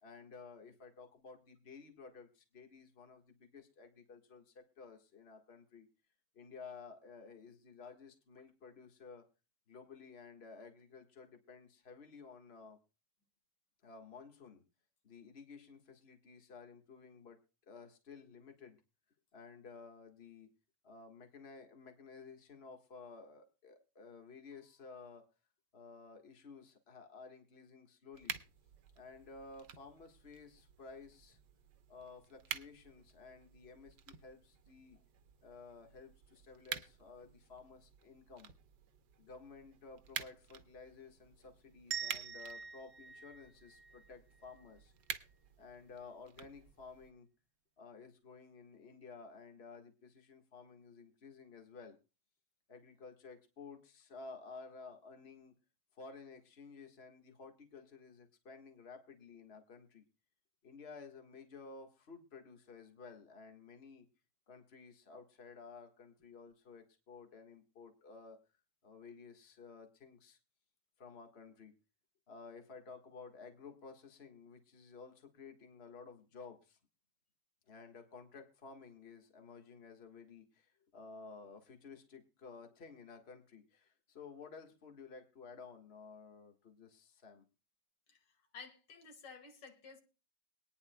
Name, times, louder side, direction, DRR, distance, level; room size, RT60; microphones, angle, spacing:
voice 1, 0.0-5.9 6.3-9.2 9.7-12.8 13.8-14.6 15.0-17.4 17.7-18.8 19.3-20.5 20.8-25.3 25.7-28.4 29.0-31.4 31.9-35.0 35.4-38.5 39.2-44.9 45.6-47.3 47.8-52.0 52.7-55.5 55.9-60.0 60.6-64.1 64.5-68.4 68.8-70.4 71.0-71.7 72.3-76.8 77.7-87.4, left 4 dB, 35° left, 1.8 m, -54 dB
sound 1, 28.1-47.1, right 8 dB, 75° right, 1.5 m, -50 dB
sound 2, 41.9-44.7, right 8 dB, 55° right, 0.8 m, -45 dB
voice 2, 88.5-90.0, left 5 dB, 80° left, 2.5 m, -53 dB
23.5 x 9.7 x 2.2 m
omnidirectional pair, 1.9 m